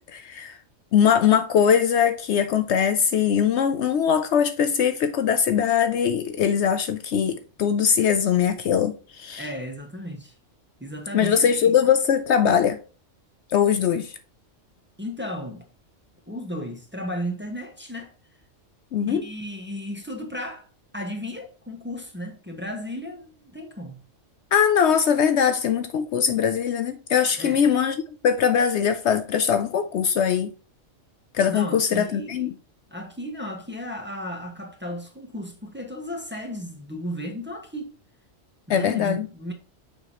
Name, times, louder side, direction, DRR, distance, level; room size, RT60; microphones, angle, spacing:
voice 1, 0.1-0.6 0.9-9.5 11.1-12.8 13.5-14.2 18.9-19.2 24.5-30.5 31.3-32.5 38.7-39.3, left 8 dB, 70° left, 0.8 m, -21 dB
voice 2, 9.4-10.3 10.8-11.7 13.9-14.0 15.0-15.6 16.3-18.1 19.1-20.7 20.9-24.0 27.4-27.7 31.5-32.6 32.9-38.0 38.7-39.5, equal, 10° right, 1.2 m, -34 dB
6.6 x 5.0 x 2.8 m
omnidirectional pair, 1.3 m